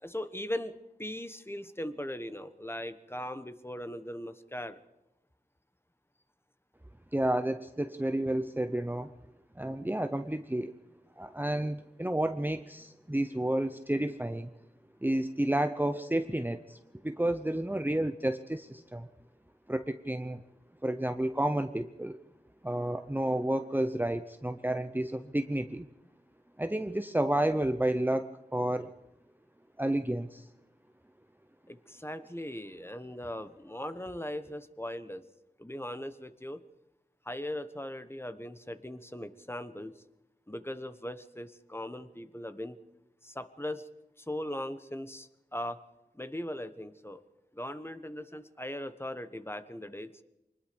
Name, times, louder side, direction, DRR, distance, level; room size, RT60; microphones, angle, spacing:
voice 1, 0.0-4.8 31.7-35.2 35.6-36.6 37.2-39.9 40.5-42.8 43.2-43.9 44.2-45.8 46.1-47.2 47.5-50.1, left 1 dB, 15° left, 10 dB, 1.3 m, -39 dB
voice 2, 7.1-9.1 9.6-10.7 11.2-14.5 15.0-16.8 17.0-19.1 19.7-20.4 20.8-22.2 22.6-25.9 26.6-28.9 29.8-30.4, right 1 dB, 10° right, 9 dB, 0.8 m, -31 dB
24.5 x 20.0 x 5.3 m, 0.94 s
wide cardioid pair, 60°, 16 cm